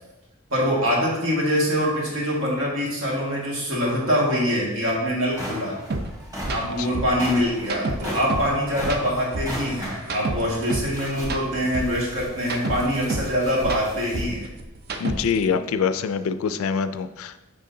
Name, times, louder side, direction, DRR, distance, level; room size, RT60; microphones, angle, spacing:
voice 1, 0.5-5.8 6.5-14.5, equal, 70° right, -4 dB, 1.9 m, -24 dB
sound 1, 4.6-4.7 5.1-14.3, equal, 15° right, 1.9 m, -37 dB
sound 2, 5.9-6.0 6.4-6.6 6.9-8.5 8.8-10.9 11.2-13.3 13.6-15.4, right 2 dB, 50° right, 0.5 m, -29 dB
voice 2, 15.0-17.4, left 6 dB, 75° left, 11 dB, 0.4 m, -25 dB
6.4 x 6.0 x 2.7 m, 1.0 s
head